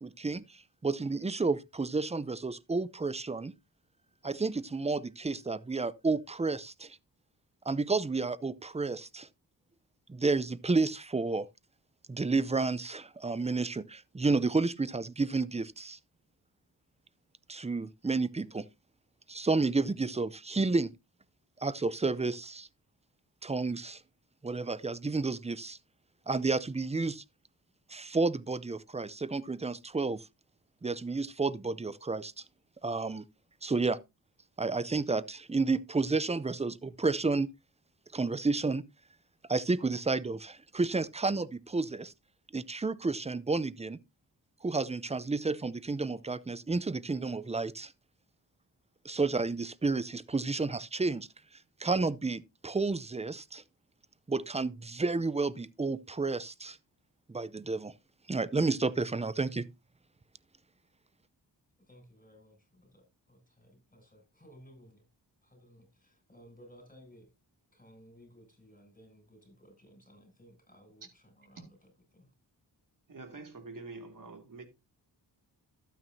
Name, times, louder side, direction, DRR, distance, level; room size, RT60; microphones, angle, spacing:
voice 1, 0.0-3.5 4.2-7.0 7.7-9.3 10.1-11.5 12.1-16.0 17.5-18.7 19.3-20.9 21.6-22.7 23.4-24.0 24.4-25.8 26.3-27.2 27.9-30.2 30.8-32.3 32.8-33.3 33.6-34.0 34.6-37.5 38.1-38.8 39.5-42.1 42.5-44.0 44.6-47.9 49.0-51.3 51.8-53.6 54.3-56.8 57.3-57.9 58.3-59.7, right 3 dB, 15° right, 0.6 m, -31 dB
voice 2, 61.8-65.1 65.4-67.3 67.7-72.3, equal, 20° left, 7.4 m, -58 dB
voice 3, 73.1-74.7, right 3 dB, 50° right, 2.6 m, -46 dB
12.0 x 9.2 x 2.7 m
cardioid pair, 70°, 42 cm